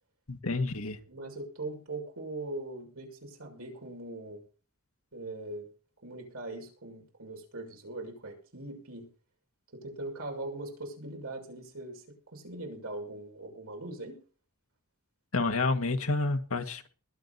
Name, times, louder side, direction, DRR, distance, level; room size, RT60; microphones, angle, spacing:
voice 1, 0.3-1.0 15.3-16.9, left 3 dB, 75° left, 1.9 m, -29 dB
voice 2, 1.1-4.4 5.1-5.7 6.0-9.1 9.7-12.0 12.3-14.2, right 2 dB, 75° right, 6.6 m, -41 dB
22.0 x 8.3 x 4.2 m
head